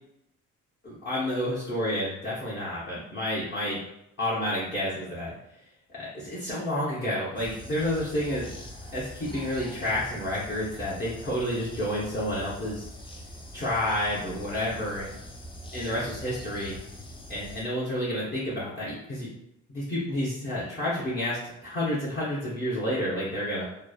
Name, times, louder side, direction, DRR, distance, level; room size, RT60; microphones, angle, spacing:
voice 1, 0.8-3.8 4.2-5.3 5.9-8.5 8.9-12.9 13.5-15.2 15.7-16.7 17.3-19.3 19.7-23.6, left 1 dB, 35° left, -9 dB, 0.8 m, -30 dB
sound 1, 7.4-17.6, left 1 dB, 15° left, 0.5 m, -43 dB
3.0 x 2.0 x 2.3 m, 0.82 s
cardioid pair, 90°, 30 cm